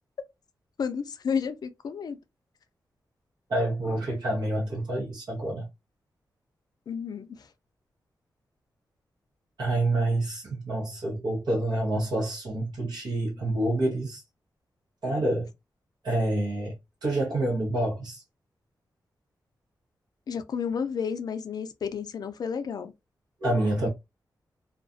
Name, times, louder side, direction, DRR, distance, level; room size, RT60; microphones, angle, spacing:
voice 1, 0.8-2.2 6.9-7.5 20.3-22.9, left 6 dB, 65° left, 0.4 m, -31 dB
voice 2, 3.5-5.7 9.6-14.2 15.0-15.5 16.0-16.7 17.0-18.2 23.4-23.9, right 1 dB, 70° right, 0.9 m, -27 dB
2.4 x 2.2 x 2.5 m
wide cardioid pair, 115°, 7 cm